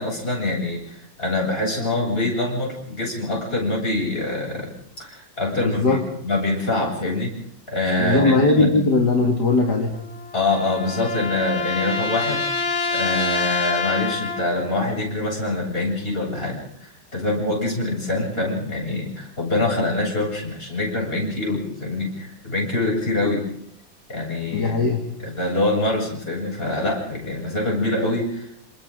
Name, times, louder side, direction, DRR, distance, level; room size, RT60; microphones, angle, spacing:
voice 1, 0.0-4.7 5.0-7.3 7.7-8.8 10.3-12.6 12.9-23.4 24.1-24.8 25.2-28.6, left 2 dB, 30° left, -1 dB, 8.2 m, -25 dB
voice 2, 5.6-6.0 8.0-9.9 24.5-25.0, left 3 dB, 55° left, 1 dB, 2.8 m, -19 dB
sound 1, 9.9-14.7, left 4 dB, 85° left, 3.4 m, -26 dB
29.0 x 27.0 x 3.9 m, 0.69 s
omnidirectional pair, 2.1 m